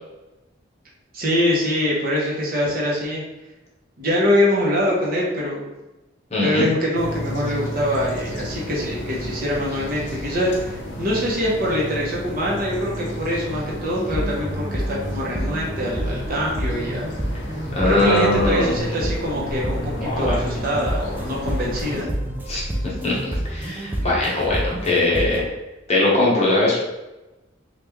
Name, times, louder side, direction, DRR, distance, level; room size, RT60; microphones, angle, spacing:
voice 1, 1.1-3.2 4.0-5.7 6.4-17.1 17.8-22.1 24.2-24.3, left 1 dB, 50° right, -4 dB, 0.9 m, -24 dB
voice 2, 6.3-6.6 17.7-18.7 19.9-20.4 22.5-22.6 23.0-23.2 23.4-25.5 25.9-26.8, left 2 dB, 35° left, -5 dB, 0.9 m, -20 dB
sound 1, 7.0-22.0, left 1 dB, 70° left, 0.6 m, -33 dB
sound 2, 13.9-25.4, right 1 dB, 10° right, 0.4 m, -28 dB
3.4 x 2.4 x 3.1 m, 1.0 s
head